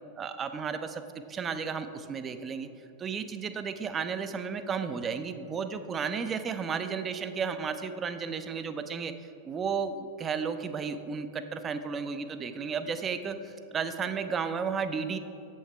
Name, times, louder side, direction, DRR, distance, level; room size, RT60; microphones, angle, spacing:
voice 1, 0.2-1.0 1.3-2.7 3.0-9.1 9.5-15.2, right 6 dB, 25° right, 10 dB, 0.4 m, -33 dB
8.5 x 7.2 x 3.2 m, 2.8 s
figure-of-eight pair, 90°, 0 cm